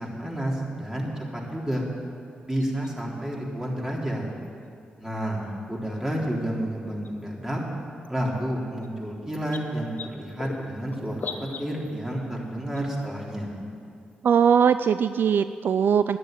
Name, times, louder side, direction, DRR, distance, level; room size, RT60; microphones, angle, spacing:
voice 1, 0.0-1.8 2.4-4.3 5.0-7.6 8.1-11.3 11.6-13.6, right 1 dB, 15° right, -3 dB, 3.7 m, -30 dB
sound 1, 1.7-1.8 2.6-3.0 4.4-4.5 5.9-6.1 7.0-7.2 8.0-8.1 8.4-8.5 8.8-8.9 9.3-12.0 12.7-13.1 14.1-14.2 14.4-14.5, left 5 dB, 60° left, 1.0 m, -39 dB
voice 2, 14.2-16.2, right 7 dB, 65° right, 13 dB, 0.3 m, -20 dB
10.5 x 10.0 x 9.1 m, 2.4 s
supercardioid pair, 55°, 4 cm